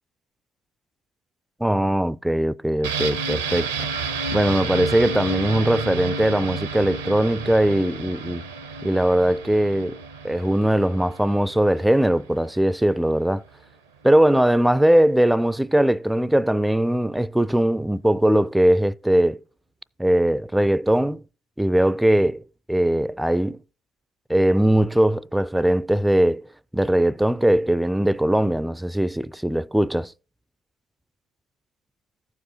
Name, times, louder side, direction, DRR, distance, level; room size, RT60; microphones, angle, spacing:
voice 1, 1.6-3.7 4.3-8.4 8.8-10.0 10.2-13.4 14.0-19.4 20.0-21.2 21.6-22.4 22.7-23.6 24.3-26.5 26.7-30.1, right 1 dB, 5° right, 0.3 m, -20 dB
sound 1, 2.8-12.5 12.8-12.9, right 4 dB, 80° right, 0.7 m, -31 dB
14.5 x 4.9 x 3.1 m
figure-of-eight pair, 50°, 0 cm